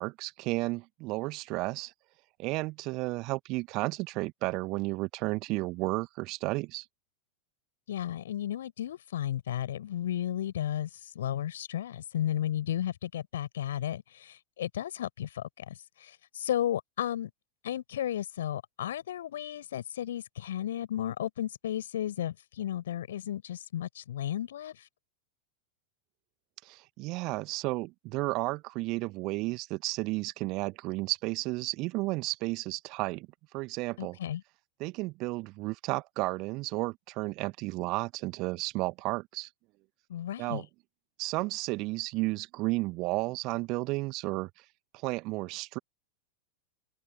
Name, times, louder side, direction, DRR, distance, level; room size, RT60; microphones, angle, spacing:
voice 1, 0.0-1.9 2.4-6.8 26.6-33.3 33.5-34.2 34.8-39.5 40.4-40.7 41.2-44.5 44.9-45.8, right 22 dB, 40° right, 1.4 m, -32 dB
voice 2, 7.9-10.9 11.1-15.7 16.0-17.3 17.6-24.8 34.0-34.4 40.1-40.6, left 11 dB, 60° left, 4.9 m, -34 dB
figure-of-eight pair, 90°, 0 cm